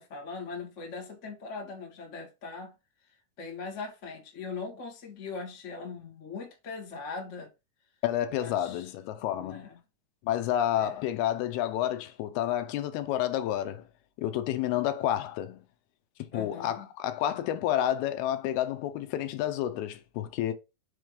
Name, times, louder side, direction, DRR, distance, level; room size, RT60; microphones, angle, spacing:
voice 1, 0.0-2.7 3.4-7.5 8.4-8.9 9.3-9.8 10.8-11.0 14.6-14.9 16.3-16.9, left 4 dB, 55° left, 0.8 m, -40 dB
voice 2, 8.0-9.7 10.2-13.8 14.2-15.6 16.2-20.5, left 11 dB, 80° left, 2.6 m, -30 dB
6.5 x 3.1 x 5.1 m
omnidirectional pair, 4.6 m